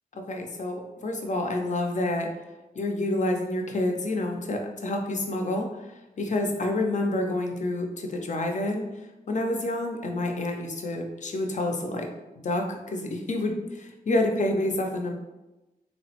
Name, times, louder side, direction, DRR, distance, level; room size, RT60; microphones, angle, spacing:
voice 1, 0.1-2.3 2.8-8.9 9.3-12.1 12.4-15.1, left 1 dB, 55° left, 3 dB, 0.4 m, -28 dB
3.2 x 2.0 x 2.8 m, 1.0 s
wide cardioid pair, 100°, 15 cm